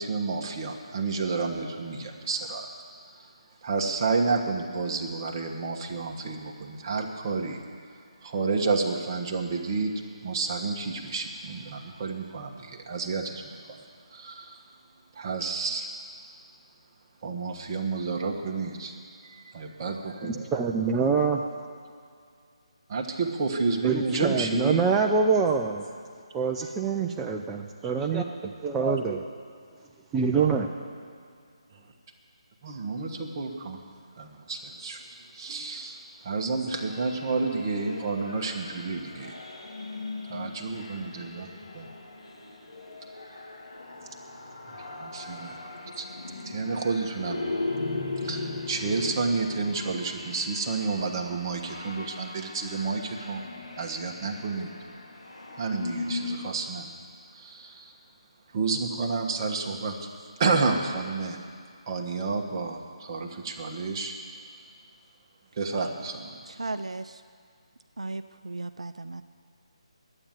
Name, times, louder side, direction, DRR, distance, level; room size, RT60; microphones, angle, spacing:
voice 1, 0.0-2.7 3.2-3.3 3.6-7.6 8.2-9.9 10.2-13.8 14.1-14.6 15.1-15.9 17.2-19.0 19.2-20.6 22.9-24.9 32.6-33.8 34.2-35.0 35.3-39.4 40.3-41.5 41.7-41.9 44.9-45.6 46.0-46.1 46.4-47.4 48.2-53.4 53.8-54.7 55.6-56.9 57.3-57.9 58.5-60.0 60.4-61.4 61.9-64.1 65.6-66.4, right 4 dB, 30° right, 2 dB, 1.3 m, -30 dB
voice 2, 20.2-21.4 23.8-25.9 26.3-29.2 30.1-30.7, right 5 dB, 10° right, 1 dB, 0.5 m, -25 dB
sound 1, 36.7-56.6, left 2 dB, 75° left, 2.0 m, -38 dB
voice 3, 66.5-67.2 68.0-69.2, right 2 dB, 70° right, 10 dB, 0.5 m, -36 dB
11.5 x 8.8 x 9.1 m, 2.2 s
figure-of-eight pair, 150°, 3 cm